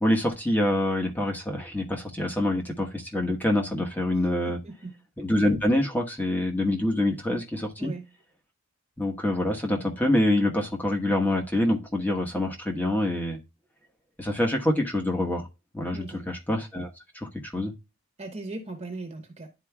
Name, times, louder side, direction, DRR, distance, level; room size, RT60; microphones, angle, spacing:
voice 1, 0.0-4.6 5.2-7.9 9.0-13.4 14.2-15.5 15.7-16.9 17.1-17.7, left 1 dB, 10° left, 2 dB, 1.1 m, -26 dB
voice 2, 4.5-4.9 7.8-8.0 15.9-16.3 18.2-19.5, right 2 dB, 25° right, 4 dB, 1.1 m, -38 dB
11.5 x 4.5 x 2.3 m, 0.27 s
head